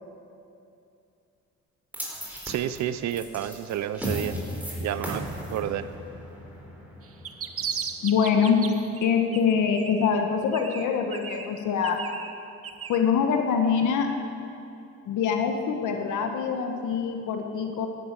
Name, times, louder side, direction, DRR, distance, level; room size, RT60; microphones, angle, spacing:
sound 1, 1.9-8.2, right 1 dB, 5° right, 4.2 m, -36 dB
voice 1, 2.4-4.4 4.8-5.9, right 10 dB, 65° right, 13 dB, 0.7 m, -30 dB
sound 2, 7.0-9.0 9.3-10.2 10.5-13.0, right 7 dB, 50° right, 1.1 m, -36 dB
voice 2, 8.0-8.6 9.0-12.0 12.9-14.1 15.1-17.9, left 6 dB, 80° left, 4 dB, 1.4 m, -24 dB
13.5 x 11.5 x 8.3 m, 2.7 s
cardioid pair, 90°, 30 cm